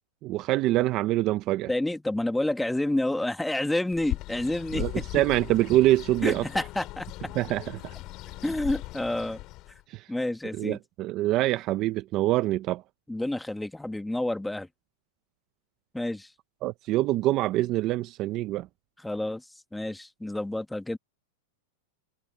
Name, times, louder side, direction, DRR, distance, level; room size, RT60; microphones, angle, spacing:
voice 1, 0.2-1.7 4.7-6.4 7.4-7.8 9.9-10.1 10.5-12.8 16.6-18.7, right 16 dB, 35° right, 0.6 m, -25 dB
voice 2, 1.7-5.0 6.2-7.1 8.4-9.4 10.1-10.8 13.1-14.7 15.9-16.3 19.0-19.4 19.7-21.0, left 1 dB, 5° left, 1.6 m, -29 dB
Bird, 3.9-9.8, left 18 dB, 35° left, 3.6 m, -38 dB
supercardioid pair, 160°, 0 cm